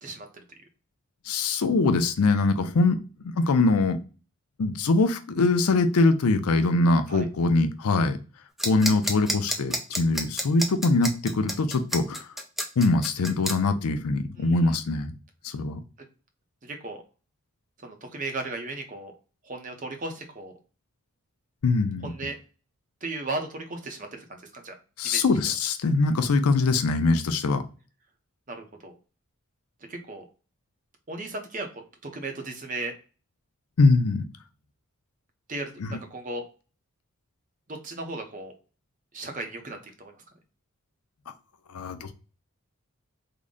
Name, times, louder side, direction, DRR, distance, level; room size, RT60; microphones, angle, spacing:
voice 1, 1.3-3.0 3.2-4.0 4.6-8.2 8.6-12.2 12.8-15.1 15.4-15.8 21.6-22.1 25.0-27.6 33.8-34.2 35.8-36.0 41.7-42.1, left 3 dB, 85° left, 9 dB, 0.5 m, -23 dB
sound 1, 8.6-13.5, equal, ahead, 0.3 m, -29 dB
voice 2, 14.4-14.7 16.6-17.0 17.8-19.1 19.4-20.5 22.0-22.3 23.0-24.7 25.0-25.2 28.5-28.9 29.9-30.3 31.1-32.9 35.5-36.4 37.7-38.5 39.1-40.2, right 2 dB, 35° right, 4 dB, 0.6 m, -36 dB
3.7 x 2.1 x 3.6 m, 0.35 s
head